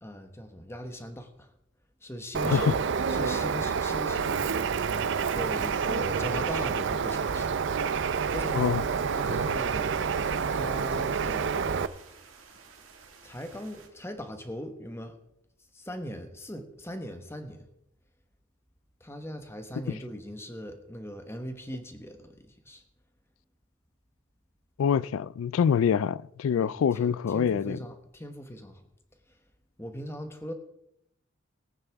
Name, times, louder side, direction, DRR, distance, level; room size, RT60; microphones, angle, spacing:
voice 1, 0.0-1.5 2.0-2.7 3.1-4.7 5.3-7.6 8.3-8.8 9.1-11.9 13.2-15.2 15.7-17.7 19.0-22.8 26.5-28.8 29.8-30.5, equal, 15° left, 1.2 m, -40 dB
Bird, 2.3-11.9, right 6 dB, 65° right, 0.5 m, -28 dB
sound 1, 4.7-13.9, right 5 dB, 80° right, 2.0 m, -53 dB
voice 2, 24.8-27.8, left 7 dB, 80° left, 0.3 m, -25 dB
19.5 x 9.1 x 3.5 m
head